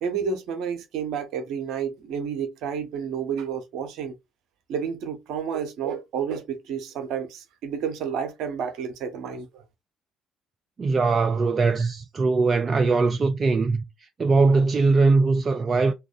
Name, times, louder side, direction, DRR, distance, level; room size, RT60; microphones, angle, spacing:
voice 1, 0.0-4.2 4.7-9.6, right 7 dB, 60° right, 0.7 m, -30 dB
voice 2, 10.8-13.8 14.2-15.9, right 3 dB, 35° right, 0.3 m, -21 dB
3.0 x 2.3 x 3.6 m
figure-of-eight pair, 50°, 0 cm